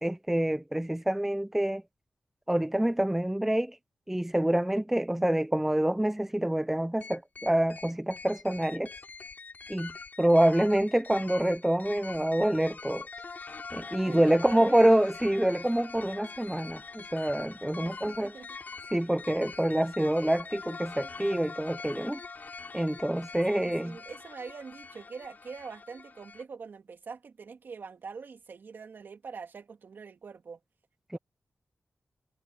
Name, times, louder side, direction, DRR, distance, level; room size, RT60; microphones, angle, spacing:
voice 1, 0.0-1.8 2.5-3.8 4.1-8.9 9.7-9.9 10.2-13.1 13.7-18.3 18.9-22.2 22.7-24.0 31.1-31.2, right 1 dB, 10° right, 0.7 m, -26 dB
sound 1, 7.0-26.4, left 4 dB, 50° left, 7.5 m, -44 dB
voice 2, 14.1-14.9 17.8-18.6 23.5-30.6, right 5 dB, 70° right, 3.1 m, -44 dB
cardioid pair, 70°, 4 cm